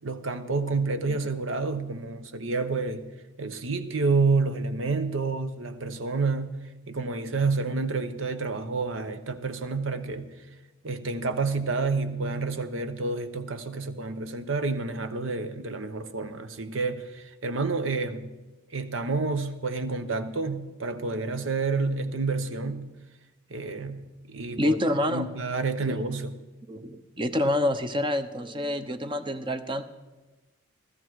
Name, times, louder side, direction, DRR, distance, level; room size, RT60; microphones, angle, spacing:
voice 1, 0.0-3.0 3.4-6.6 6.9-10.3 10.8-18.3 18.7-22.9 23.5-24.8 25.1-26.4, right 3 dB, 70° right, 1.0 m, -29 dB
voice 2, 24.6-25.3 25.8-26.0 26.7-29.8, left 1 dB, 25° right, 0.8 m, -27 dB
16.0 x 14.0 x 4.7 m
head